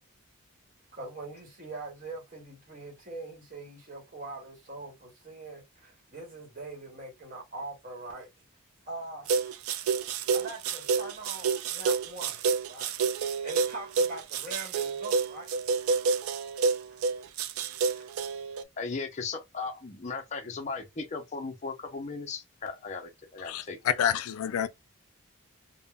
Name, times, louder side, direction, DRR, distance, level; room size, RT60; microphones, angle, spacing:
voice 1, 0.9-8.3 8.8-9.3 10.3-12.9 13.4-15.5, right 2 dB, 35° right, 1.0 m, -42 dB
sound 1, 9.3-18.6, right 4 dB, 80° right, 0.3 m, -29 dB
voice 2, 18.8-24.0, left 4 dB, 35° left, 0.5 m, -37 dB
voice 3, 23.5-24.7, left 9 dB, 85° left, 0.4 m, -28 dB
3.5 x 2.0 x 2.3 m
head